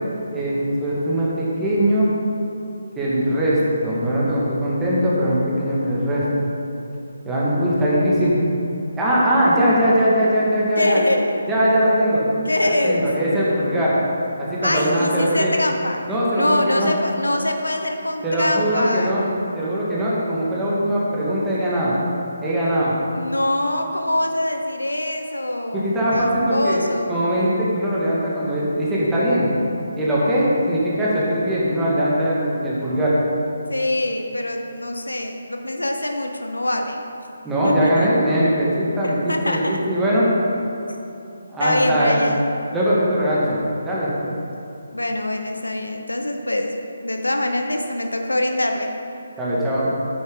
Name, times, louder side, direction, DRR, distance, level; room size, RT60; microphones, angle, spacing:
voice 1, 0.3-2.1 3.0-6.3 7.2-8.4 9.0-11.0 11.5-12.2 12.6-13.9 14.4-15.5 16.1-16.9 18.2-19.3 19.6-22.0 22.4-23.0 25.7-26.8 27.1-29.5 30.0-33.1 37.4-40.2 41.5-42.2 42.7-43.6 43.8-44.1 49.4-49.9, equal, 10° right, -8 dB, 1.9 m, -20 dB
voice 2, 10.8-11.3 12.5-13.1 14.6-16.0 16.3-19.1 23.1-27.4 33.7-37.0 37.6-38.1 39.0-39.8 41.6-42.4 44.9-46.7 47.0-48.9, left 1 dB, 80° left, 4 dB, 0.8 m, -24 dB
9.3 x 8.3 x 3.9 m, 2.9 s
figure-of-eight pair, 145°, 0 cm